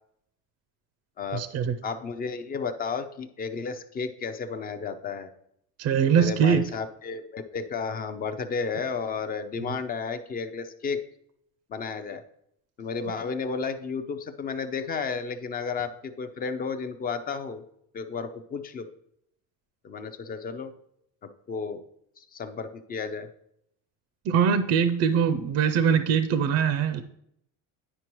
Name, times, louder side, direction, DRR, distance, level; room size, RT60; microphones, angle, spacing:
voice 1, 1.3-1.7 5.8-6.6 24.3-27.0, right 7 dB, 45° right, 0.4 m, -22 dB
voice 2, 1.8-5.3 6.0-11.0 11.7-12.2 12.8-17.6 17.9-18.9 19.8-20.7 21.2-21.8 22.2-23.3, left 5 dB, 25° left, 0.4 m, -33 dB
9.6 x 5.2 x 3.0 m
cardioid pair, 160°, 38 cm